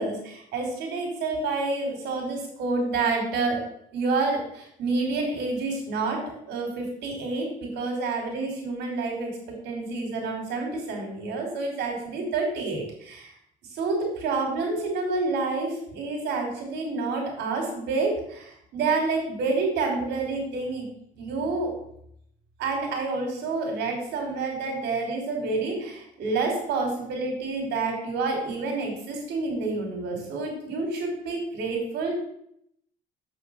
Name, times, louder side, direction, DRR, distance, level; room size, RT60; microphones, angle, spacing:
voice 1, 0.0-3.6 3.9-6.2 6.5-9.3 9.6-13.3 13.7-20.9 21.2-21.7 22.6-32.1, right 3 dB, 80° right, 2 dB, 3.7 m, -28 dB
7.6 x 5.9 x 6.4 m, 0.72 s
cardioid pair, 110°, 17 cm